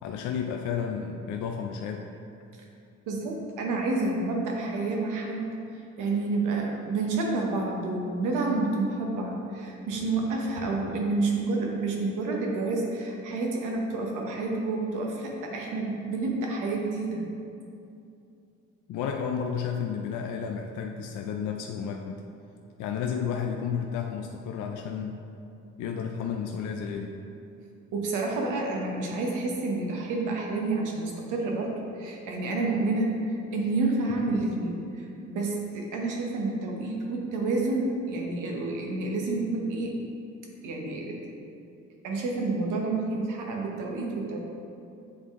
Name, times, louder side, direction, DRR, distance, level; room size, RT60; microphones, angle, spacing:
voice 1, 0.0-2.0 18.9-22.2 22.8-25.2 25.8-27.2, left 7 dB, 75° left, 2 dB, 0.5 m, -32 dB
voice 2, 3.1-5.5 6.0-17.2 27.9-40.0 40.6-41.2 42.0-44.4, right 3 dB, 90° right, 0 dB, 1.0 m, -29 dB
7.8 x 3.7 x 3.6 m, 2.6 s
cardioid pair, 90°, 30 cm